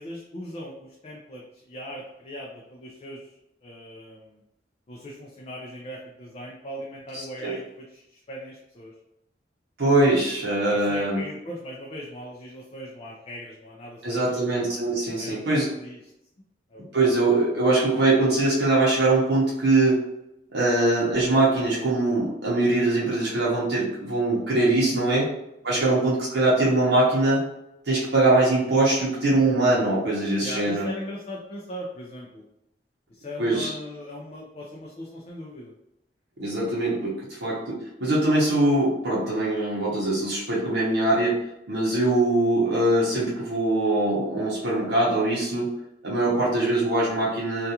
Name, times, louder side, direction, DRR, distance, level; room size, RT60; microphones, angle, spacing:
voice 1, 0.0-4.4 4.9-8.9 10.7-14.4 15.2-16.0 16.7-17.1 24.8-25.1 25.7-26.0 30.4-32.4 33.1-35.7, equal, 35° left, -2 dB, 0.4 m, -39 dB
voice 2, 7.1-7.5 9.8-11.2 14.0-15.7 16.9-20.0 20.5-25.3 25.6-27.4 27.9-30.9 33.4-33.7 36.4-41.4 41.7-45.7 46.0-47.7, right 2 dB, 70° right, -6 dB, 0.7 m, -22 dB
2.4 x 2.3 x 2.8 m, 0.84 s
head